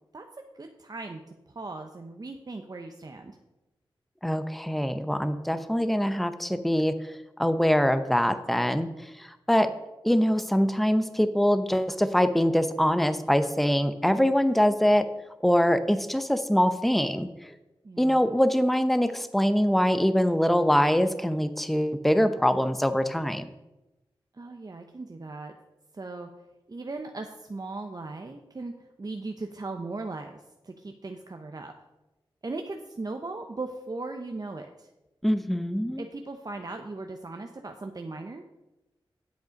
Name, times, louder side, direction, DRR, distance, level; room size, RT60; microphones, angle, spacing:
voice 1, 0.5-1.2 1.5-3.4 17.8-18.2 24.3-25.5 25.9-26.3 26.7-28.7 29.0-31.7 32.4-34.9 36.0-38.6, right 3 dB, 40° right, 4 dB, 0.9 m, -38 dB
voice 2, 4.2-8.9 9.2-9.7 10.0-15.1 15.4-17.5 18.0-23.5 35.2-36.0, equal, ahead, 10 dB, 0.7 m, -24 dB
8.2 x 7.9 x 5.2 m, 1.0 s
cardioid pair, 40°, 10 cm